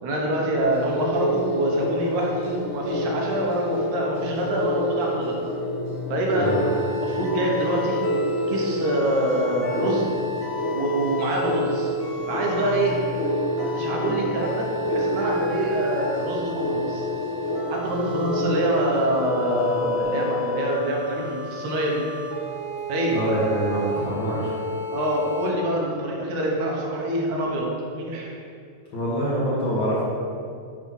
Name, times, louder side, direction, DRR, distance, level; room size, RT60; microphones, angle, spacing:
voice 1, 0.0-5.4 6.1-8.0 8.5-10.1 10.7-11.9 12.3-13.0 13.6-17.0 17.7-22.0 22.9-23.2 24.9-28.3, right 1 dB, 75° right, -2 dB, 2.4 m, -25 dB
sound 1, 0.6-20.0, left 1 dB, 80° left, 2.7 m, -28 dB
sound 2, 6.4-25.5, left 1 dB, 40° left, 0.9 m, -34 dB
voice 2, 23.1-24.5 28.9-30.0, equal, 55° left, -7 dB, 1.5 m, -25 dB
7.3 x 4.2 x 5.7 m, 2.4 s
omnidirectional pair, 3.5 m